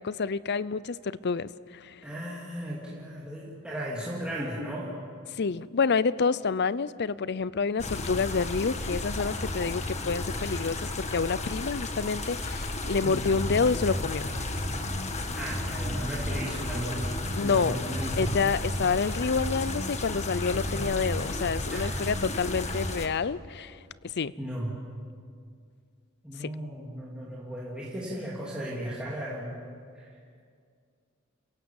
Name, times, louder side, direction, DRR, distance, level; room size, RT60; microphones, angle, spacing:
voice 1, 0.0-2.0 5.3-14.3 17.4-17.8 18.2-23.8 24.0-24.3 26.4-26.5, left 5 dB, 50° left, 18 dB, 0.6 m, -28 dB
voice 2, 2.0-4.9 13.0-13.3 15.3-18.4 21.7-21.9 24.4-24.8 26.2-29.6 29.9-30.4, right 1 dB, 5° right, -6 dB, 2.7 m, -36 dB
sound 1, 7.8-23.1, left 2 dB, 30° left, 1.6 m, -34 dB
sound 2, 13.3-22.9, equal, 50° right, 5.6 m, -35 dB
29.5 x 17.0 x 7.2 m, 2.2 s
head